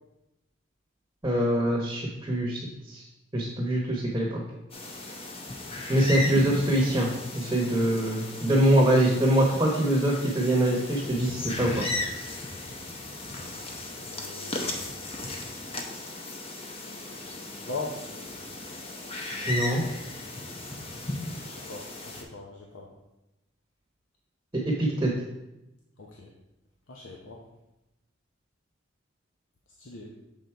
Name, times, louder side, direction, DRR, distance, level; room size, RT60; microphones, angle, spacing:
voice 1, 1.2-2.6 2.9-3.0 3.3-4.4 5.9-7.1 7.3-11.9 19.5-19.8 24.5-25.1, right 1 dB, 15° right, -2 dB, 1.0 m, -24 dB
sound 1, 4.7-22.2, left 2 dB, 30° left, 0.8 m, -36 dB
voice 2, 14.0-15.0 17.6-18.1 21.5-22.9 26.0-26.3 26.9-27.4 29.8-30.1, left 3 dB, 85° left, -2 dB, 0.8 m, -40 dB
7.0 x 3.9 x 4.5 m, 0.93 s
head